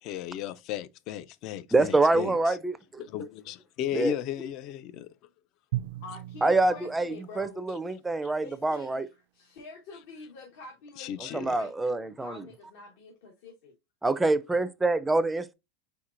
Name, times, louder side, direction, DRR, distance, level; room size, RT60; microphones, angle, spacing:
voice 1, 0.0-2.6 3.0-5.1 8.2-8.3 11.0-11.6, left 10 dB, 50° left, 0.4 m, -35 dB
voice 2, 1.7-2.8 3.9-4.2 6.4-9.0 11.3-12.4 14.0-15.5, right 2 dB, 10° right, 0.4 m, -25 dB
Drum, 5.7-8.7, right 15 dB, 75° right, 0.3 m, -39 dB
voice 3, 6.0-7.7 8.4-13.7, left 4 dB, 70° left, 1.2 m, -47 dB
4.4 x 4.0 x 2.5 m
supercardioid pair, 125°, 0 cm